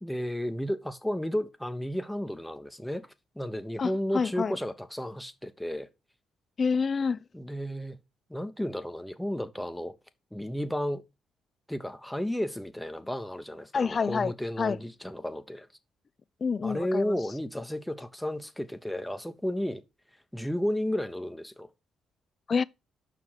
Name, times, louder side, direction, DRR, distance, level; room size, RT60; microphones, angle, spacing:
voice 1, 0.0-3.1 3.4-5.9 7.3-8.0 8.3-9.9 10.3-11.0 11.7-15.7 16.6-19.8 20.3-21.7, equal, 5° left, 0.9 m, -33 dB
voice 2, 3.8-4.5 6.6-7.2 13.7-14.3 14.6-14.8 16.4-17.2 22.5-22.6, left 5 dB, 40° left, 0.4 m, -27 dB
5.8 x 4.8 x 5.6 m
cardioid pair, 90°, 0 cm